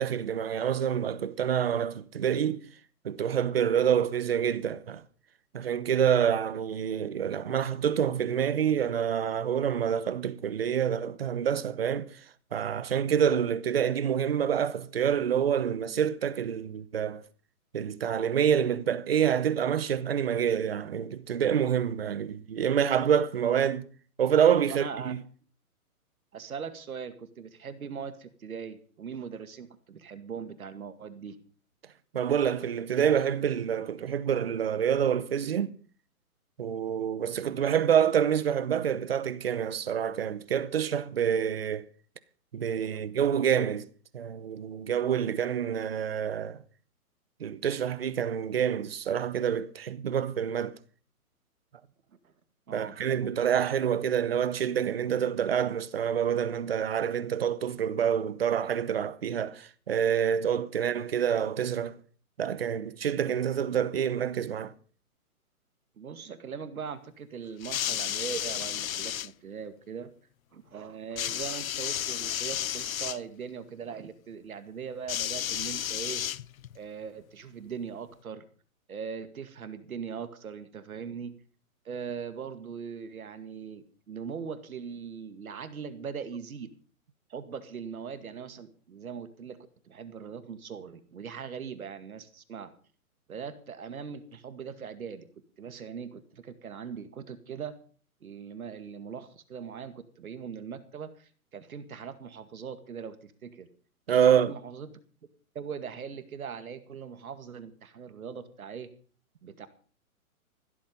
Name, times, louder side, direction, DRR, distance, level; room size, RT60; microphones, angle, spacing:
voice 1, 0.0-2.6 3.0-5.0 5.5-12.2 12.5-17.2 17.7-23.8 24.2-25.2 32.1-35.8 36.6-41.9 42.5-43.9 44.1-46.6 47.4-50.8 52.7-62.0 62.4-64.7 104.1-104.5, right 8 dB, 40° right, 0.9 m, -27 dB
voice 2, 24.7-25.1 26.3-31.4 52.2-52.3 52.7-53.0 66.0-70.1 70.5-76.2 76.7-78.4 78.9-81.4 81.8-86.7 87.3-92.7 93.3-95.3 95.6-97.8 98.2-103.7 104.2-104.9 105.5-108.9 109.4-109.7, right 6 dB, 70° right, 2.2 m, -40 dB
sound 1, 67.6-69.3 71.2-73.2 75.1-76.8 77.7-77.8, left 11 dB, 65° left, 0.6 m, -32 dB
15.0 x 13.0 x 5.4 m
hypercardioid pair, 175°, 44 cm